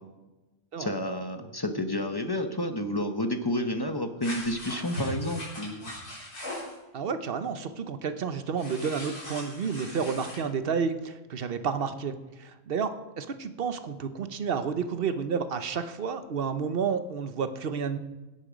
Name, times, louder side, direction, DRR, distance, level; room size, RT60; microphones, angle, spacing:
voice 1, 0.8-6.0, left 1 dB, 25° left, 6 dB, 0.6 m, -30 dB
sound 1, 4.2-6.7 8.6-10.4, left 1 dB, 90° left, 4.6 m, -39 dB
voice 2, 6.9-12.9 13.2-18.0, right 6 dB, 50° right, 10 dB, 0.8 m, -30 dB
16.5 x 8.5 x 5.1 m, 1.1 s
omnidirectional pair, 1.6 m